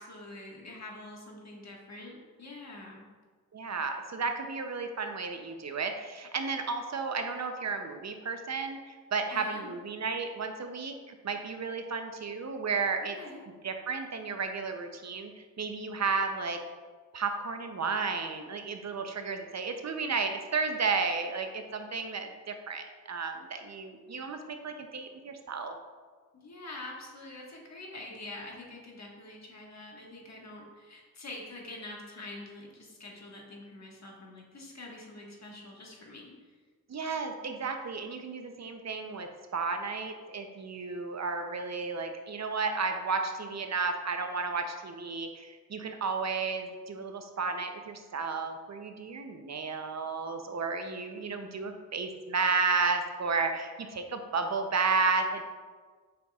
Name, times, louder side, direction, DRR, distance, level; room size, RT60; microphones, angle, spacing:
voice 1, 0.0-3.1 9.3-9.7 13.2-13.5 26.3-36.5, left 2 dB, 50° left, -1 dB, 1.5 m, -45 dB
voice 2, 3.5-13.2 13.6-16.6 17.1-25.8 36.9-55.4, right 4 dB, 50° right, 6 dB, 0.6 m, -33 dB
7.5 x 5.5 x 2.3 m, 1.5 s
cardioid pair, 70°, 36 cm